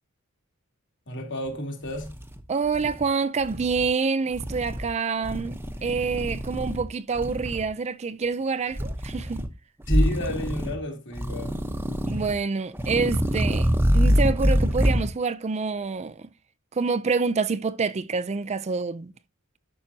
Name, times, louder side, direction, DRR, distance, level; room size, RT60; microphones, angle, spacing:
voice 1, 1.1-2.1 9.9-11.6, equal, 60° left, 3.0 m, -30 dB
sound 1, 1.5-1.6 1.9-3.0 3.4-3.9 4.3-4.9 5.2-6.8 7.1-7.7 8.7-9.5 9.8-10.8 11.1-12.3 12.7-15.1, equal, 10° right, 0.9 m, -25 dB
voice 2, 2.5-9.4 12.1-16.3 16.7-19.1, right 4 dB, 30° right, 0.4 m, -27 dB
11.5 x 6.4 x 2.8 m
head